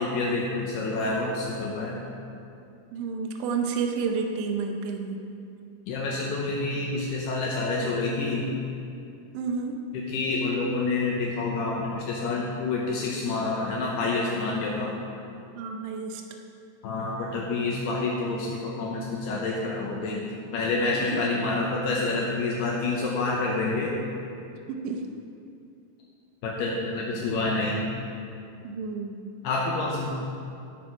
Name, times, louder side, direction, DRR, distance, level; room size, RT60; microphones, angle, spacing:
voice 1, 0.0-2.0 5.9-8.5 9.9-14.9 16.8-20.2 20.5-23.9 26.4-27.9 29.4-30.1, left 3 dB, 75° left, -3 dB, 2.6 m, -28 dB
voice 2, 2.9-5.2 9.3-9.8 15.0-15.1 15.5-16.2 20.9-21.3 24.7-25.1 28.6-29.3, right 5 dB, 80° right, 4 dB, 3.2 m, -30 dB
14.5 x 7.7 x 4.5 m, 2.6 s
omnidirectional pair, 5.5 m